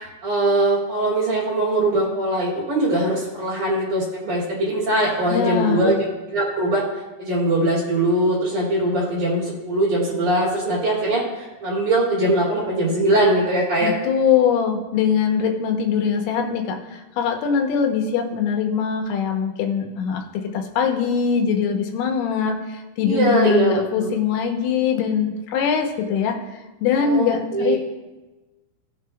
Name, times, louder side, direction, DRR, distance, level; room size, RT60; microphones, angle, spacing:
voice 1, 0.0-5.9 6.3-6.8 7.2-13.9 23.0-24.1 27.0-27.8, right 1 dB, 45° right, -6 dB, 3.3 m, -21 dB
voice 2, 5.3-6.0 13.8-26.4 26.8-27.8, left 7 dB, 85° left, 3 dB, 3.6 m, -22 dB
16.5 x 7.9 x 2.3 m, 1.1 s
omnidirectional pair, 5.7 m